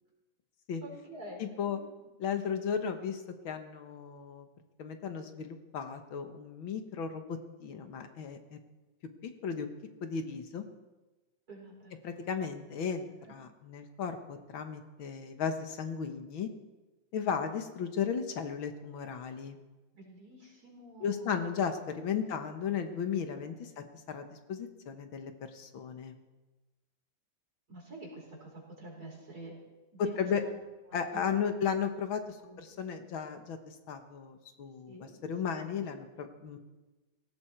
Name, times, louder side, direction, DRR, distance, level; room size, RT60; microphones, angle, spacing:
voice 1, 0.8-1.7 2.0-2.1 11.5-11.9 12.8-12.9 14.3-14.4 17.2-17.5 19.9-21.5 22.2-22.5 23.3-23.9 27.7-29.5 29.9-30.6 30.9-31.4 32.4-32.6 34.9-35.1, right 2 dB, 50° right, -1 dB, 5.3 m, -48 dB
voice 2, 1.4-1.8 2.2-4.5 4.8-8.6 9.2-9.7 10.0-10.6 12.0-16.5 17.1-19.6 21.0-26.2 30.2-30.4 30.9-34.9 35.2-36.6, left 7 dB, 85° left, 7 dB, 2.2 m, -35 dB
18.0 x 17.5 x 4.6 m, 1.1 s
omnidirectional pair, 2.1 m